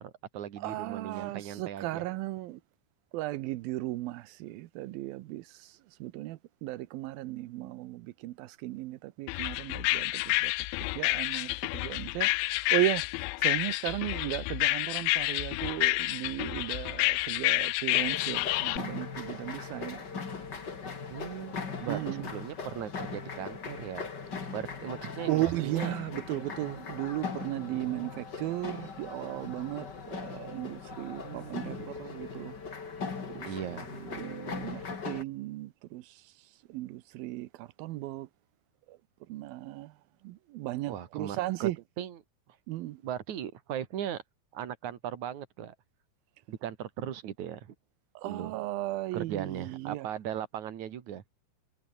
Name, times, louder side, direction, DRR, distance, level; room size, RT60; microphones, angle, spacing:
voice 1, 0.0-2.0 21.1-24.1 24.5-26.0 27.7-28.2 31.2-31.9 33.4-34.2 40.9-41.7 42.0-42.2 43.0-44.2 44.5-45.7 46.5-47.7 48.2-48.5 49.1-51.2, right 10 dB, 50° right, 2.8 m, -38 dB
voice 2, 0.6-2.6 3.1-10.5 10.8-13.1 13.4-20.0 21.9-22.3 25.3-32.5 33.3-33.5 34.1-36.3 36.7-38.3 38.9-39.0 39.3-39.9 40.2-41.8 42.7-43.0 48.2-50.1, right 17 dB, 85° right, 2.1 m, -36 dB
sound 1, 9.3-18.8, left 22 dB, 80° left, 2.7 m, -29 dB
sound 2, 17.9-35.2, left 5 dB, 30° left, 2.2 m, -40 dB
omnidirectional pair, 5.4 m